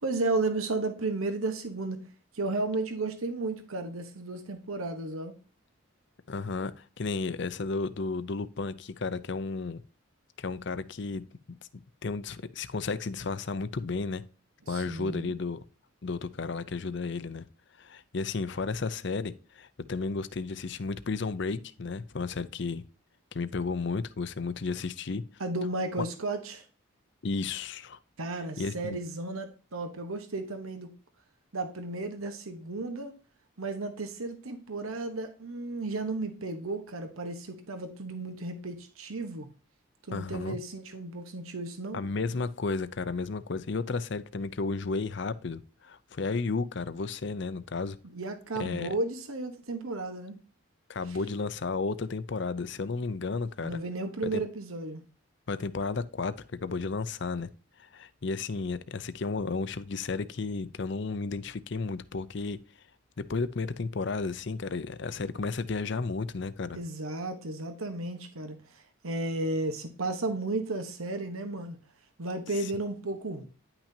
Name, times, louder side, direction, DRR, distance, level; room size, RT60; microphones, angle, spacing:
voice 1, 0.0-2.0 2.3-5.4 14.7-15.3 25.4-26.6 28.2-30.9 31.5-33.1 33.6-39.5 40.1-42.0 48.1-50.4 51.1-51.2 53.6-55.0 66.7-71.8 72.2-73.5, right 2 dB, 80° right, 1.1 m, -33 dB
voice 2, 6.3-9.8 10.4-11.2 12.0-14.2 14.7-15.6 16.0-17.4 17.8-22.8 23.3-25.2 27.2-28.0 28.6-29.0 40.1-40.6 41.9-48.0 48.6-48.9 50.9-53.8 54.3-54.4 55.5-56.3 56.6-57.5 57.8-62.6 63.2-66.8 72.6-72.7, left 4 dB, 55° left, 0.6 m, -33 dB
10.0 x 5.9 x 2.8 m
head